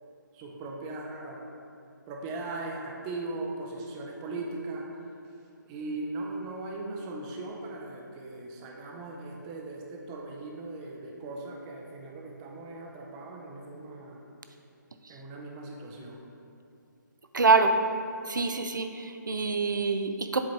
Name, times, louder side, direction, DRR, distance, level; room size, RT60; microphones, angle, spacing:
voice 1, 0.3-1.5 2.1-4.8 5.7-14.2 15.1-16.2, right 2 dB, 15° right, -1 dB, 0.5 m, -38 dB
voice 2, 17.3-17.8 18.3-20.4, right 4 dB, 70° right, 7 dB, 0.5 m, -25 dB
7.6 x 5.0 x 2.9 m, 2.6 s
figure-of-eight pair, 145°, 11 cm